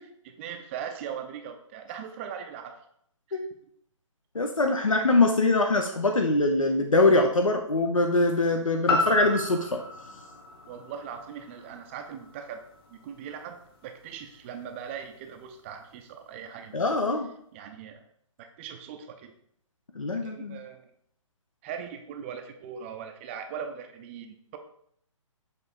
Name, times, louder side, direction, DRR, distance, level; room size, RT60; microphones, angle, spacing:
voice 1, 0.2-2.8 3.3-3.5 10.7-12.6 12.9-16.7 17.5-18.0 18.4-19.3 20.2-20.9 21.6-24.6, right 7 dB, 25° right, 6 dB, 0.4 m, -40 dB
voice 2, 4.3-9.8 16.7-17.3 20.0-20.6, left 2 dB, 85° left, 4 dB, 0.7 m, -23 dB
sound 1, 8.9-13.0 13.4-13.5, left 2 dB, 45° left, 1.2 m, -32 dB
6.9 x 3.2 x 4.2 m, 0.69 s
figure-of-eight pair, 135°, 17 cm